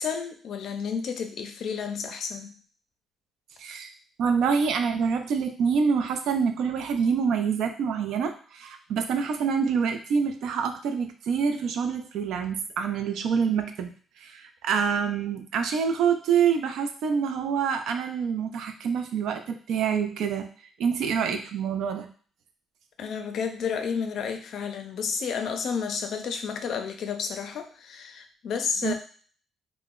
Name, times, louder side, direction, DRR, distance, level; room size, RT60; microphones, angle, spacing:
voice 1, 0.0-2.6 23.0-28.9, left 6 dB, 70° left, 6 dB, 0.4 m, -31 dB
voice 2, 3.6-3.9 4.2-13.9 14.2-20.5 20.8-22.1 28.8-28.9, right 6 dB, 80° right, 6 dB, 0.4 m, -26 dB
2.0 x 2.0 x 3.6 m, 0.43 s
cardioid pair, 90°, 0 cm